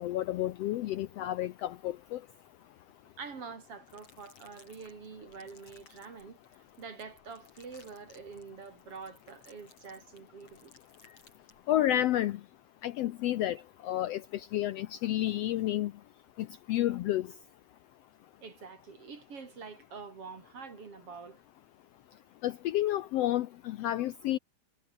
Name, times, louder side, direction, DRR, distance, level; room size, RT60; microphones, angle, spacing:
voice 1, 0.0-2.2 11.7-12.4 12.8-13.6 13.8-15.9 16.4-17.3 22.4-24.4, left 13 dB, 75° left, 1.5 m, -30 dB
voice 2, 3.2-6.4 6.8-10.7 18.4-21.4, right 5 dB, 50° right, 4.2 m, -46 dB
sound 1, 3.9-11.9, left 3 dB, 50° left, 8.0 m, -62 dB
omnidirectional pair, 3.4 m